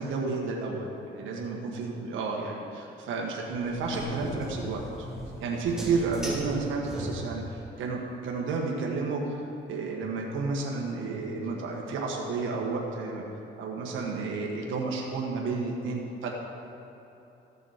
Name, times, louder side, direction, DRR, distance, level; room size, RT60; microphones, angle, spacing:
voice 1, 0.0-4.8 5.4-13.2 13.6-16.3, right 4 dB, 85° right, -1 dB, 1.4 m, -31 dB
sound 1, 3.5-7.6, equal, 5° right, 2.0 m, -37 dB
14.0 x 6.9 x 5.1 m, 3.0 s
cardioid pair, 90°, 20 cm